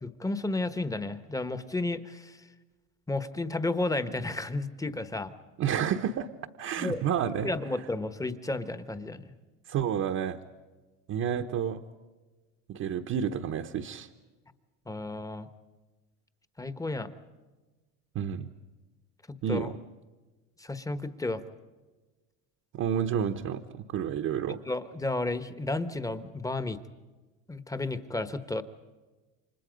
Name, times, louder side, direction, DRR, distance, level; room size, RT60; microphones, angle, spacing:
voice 1, 0.0-2.4 3.1-5.3 6.8-7.0 7.4-9.3 14.9-15.5 16.6-17.1 19.5-19.7 20.6-21.4 24.5-26.8 27.5-28.6, left 2 dB, 10° left, 11 dB, 1.2 m, -32 dB
voice 2, 5.6-6.3 6.6-7.5 9.7-10.4 11.1-11.8 12.7-14.1 18.1-18.5 19.4-19.8 22.7-24.6, right 8 dB, 45° right, 4 dB, 1.1 m, -30 dB
29.0 x 25.0 x 5.2 m, 1.3 s
supercardioid pair, 115°, 37 cm